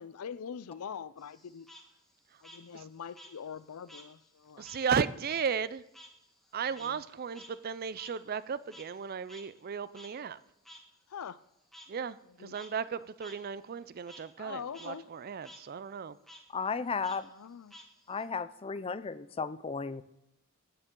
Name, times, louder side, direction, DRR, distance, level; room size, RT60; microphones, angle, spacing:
voice 1, 0.0-1.7 2.4-4.7 6.8-7.0 11.1-11.4 12.2-12.6 12.9-13.1 14.4-15.1 17.3-17.8, left 7 dB, 90° left, 0.5 m, -43 dB
Frog, 1.2-4.1 4.4-9.0 9.3-9.4 9.9-10.1 10.7-10.8 11.7-11.9 12.4-12.7 13.2-13.3 13.7-14.2 14.6-14.9 15.2-15.6 16.2-16.4 17.0-18.2, equal, ahead, 1.5 m, -53 dB
voice 2, 4.6-5.8 6.5-10.4 11.9-16.2, right 6 dB, 45° right, 0.4 m, -35 dB
voice 3, 16.5-17.3 18.1-20.0, left 5 dB, 25° left, 0.4 m, -34 dB
16.5 x 8.7 x 3.8 m
head